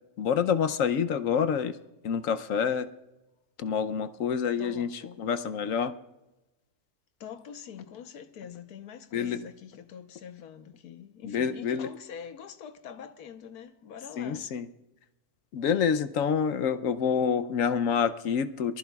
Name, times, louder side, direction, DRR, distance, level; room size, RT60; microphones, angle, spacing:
voice 1, 0.2-1.8 2.0-2.9 3.6-5.9 9.1-9.4 11.2-11.9 14.2-14.7 15.5-18.8, left 7 dB, 65° left, 1.0 m, -27 dB
voice 2, 4.6-5.2 7.2-14.4, left 7 dB, 85° left, 1.4 m, -44 dB
23.5 x 14.0 x 2.3 m
omnidirectional pair, 1.6 m